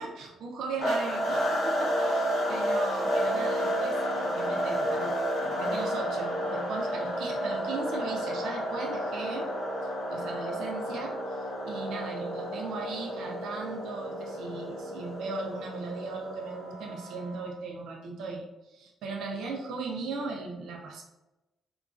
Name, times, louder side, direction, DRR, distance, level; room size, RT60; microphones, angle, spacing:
voice 1, 0.0-5.1 5.4-9.5 10.1-21.0, right 3 dB, 75° right, 0 dB, 0.5 m, -37 dB
sound 1, 0.8-17.5, equal, 70° left, 1.1 m, -31 dB
2.9 x 2.4 x 2.4 m, 0.99 s
cardioid pair, 90°, 0 cm